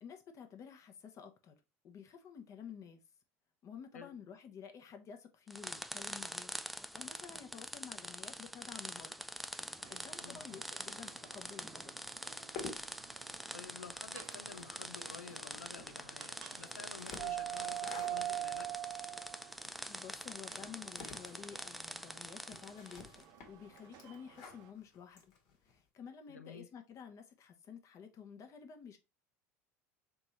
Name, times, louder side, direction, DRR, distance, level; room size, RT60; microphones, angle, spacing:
voice 1, 0.0-1.5 1.8-3.0 3.6-6.5 6.9-9.3 9.9-11.9 19.9-23.1 23.5-25.3 25.7-29.0, left 7 dB, 45° left, 1.0 m, -51 dB
sound 1, 5.5-23.2, equal, ahead, 0.3 m, -45 dB
sound 2, 9.8-24.7, right 13 dB, 55° right, 0.7 m, -46 dB
voice 2, 10.2-10.6 13.5-18.7 26.3-26.7, left 5 dB, 90° left, 0.5 m, -51 dB
sound 3, 12.3-25.8, left 5 dB, 60° left, 1.5 m, -53 dB
3.5 x 3.2 x 4.1 m
hypercardioid pair, 75°, 8 cm